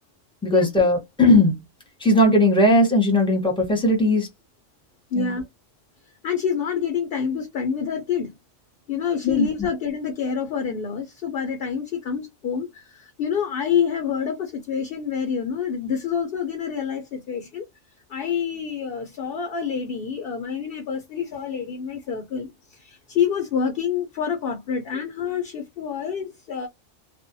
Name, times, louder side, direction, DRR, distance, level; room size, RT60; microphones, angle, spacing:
voice 1, 0.4-1.6 2.0-4.3 5.2-5.3 9.2-9.5, left 1 dB, 5° left, 0.8 m, -18 dB
voice 2, 5.1-5.5 6.2-8.3 8.9-17.7 18.1-26.7, left 7 dB, 55° left, 0.7 m, -27 dB
2.5 x 2.2 x 2.5 m
omnidirectional pair, 1.3 m